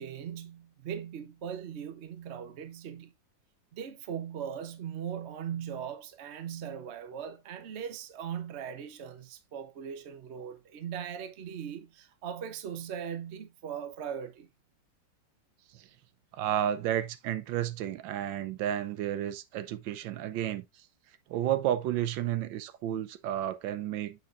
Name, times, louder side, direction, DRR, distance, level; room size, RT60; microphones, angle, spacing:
voice 1, 0.0-3.1 3.7-14.5, right 8 dB, 50° right, 0.9 m, -39 dB
voice 2, 16.3-20.9 21.3-24.2, right 11 dB, 85° right, 1.4 m, -32 dB
7.1 x 6.3 x 2.5 m
omnidirectional pair, 2.0 m